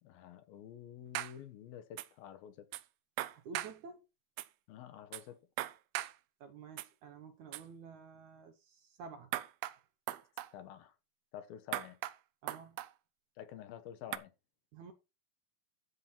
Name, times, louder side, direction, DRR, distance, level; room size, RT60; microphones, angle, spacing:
voice 1, 0.0-2.7 4.7-5.4 10.5-11.0 11.3-12.0 13.4-14.3, left 10 dB, 75° left, 2.9 m, -49 dB
sound 1, 1.1-1.3 2.0-2.1 2.7-2.8 3.2-3.7 4.4-4.5 5.1-5.2 5.6-6.1 6.8-6.9 7.5-7.6 9.3-9.8 10.1-10.5 11.7-12.2 12.5-12.9 14.1-14.2, right 15 dB, 90° right, 2.6 m, -38 dB
voice 2, 3.3-4.0 6.4-9.3 12.4-12.8 14.7-14.9, right 5 dB, 65° right, 2.0 m, -51 dB
13.0 x 4.5 x 5.8 m
omnidirectional pair, 4.3 m